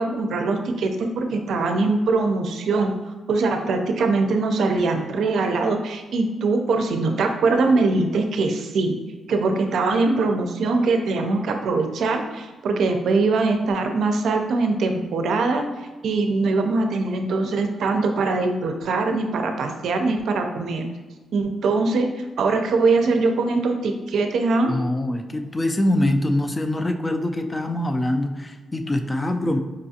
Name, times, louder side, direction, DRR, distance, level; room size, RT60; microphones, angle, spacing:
voice 1, 0.0-2.9 3.3-9.0 9.3-15.6 16.0-20.8 21.3-22.1 22.4-24.7, right 3 dB, 75° right, 4 dB, 0.4 m, -22 dB
voice 2, 24.7-29.6, left 1 dB, 20° left, 6 dB, 0.4 m, -24 dB
4.9 x 2.4 x 2.7 m, 1.3 s
cardioid pair, 85°, 0 cm